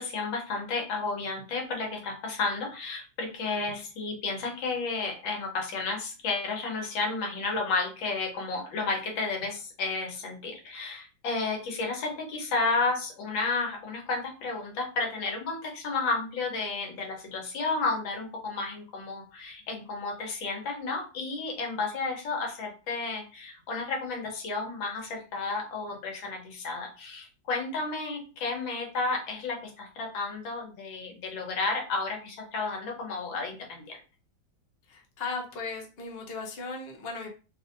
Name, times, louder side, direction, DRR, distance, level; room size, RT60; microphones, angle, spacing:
voice 1, 0.0-34.0, left 3 dB, 80° left, 1 dB, 1.7 m, -32 dB
voice 2, 34.9-37.3, left 4 dB, 50° left, 0 dB, 0.7 m, -37 dB
3.9 x 2.6 x 2.6 m, 0.34 s
omnidirectional pair, 2.1 m